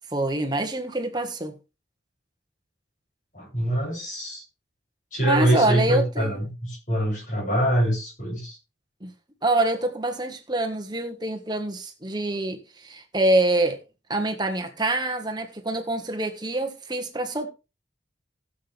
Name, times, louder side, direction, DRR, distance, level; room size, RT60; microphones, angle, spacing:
voice 1, 0.1-1.5 5.3-6.4 9.0-9.1 9.4-13.8 14.1-17.5, right 2 dB, 25° right, 1.6 m, -25 dB
voice 2, 3.3-4.4 5.1-8.6, right 1 dB, 45° left, 7.4 m, -24 dB
16.0 x 7.8 x 3.5 m
head